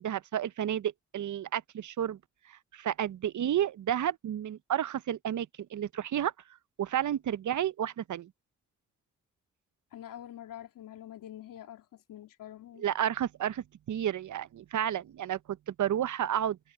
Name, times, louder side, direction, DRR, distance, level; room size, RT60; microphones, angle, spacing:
voice 1, 0.0-2.2 2.5-6.3 6.8-8.3 12.8-16.6, right 10 dB, 65° right, 0.8 m, -31 dB
voice 2, 9.9-12.9, left 12 dB, 85° left, 2.7 m, -46 dB
supercardioid pair, 40°, 32 cm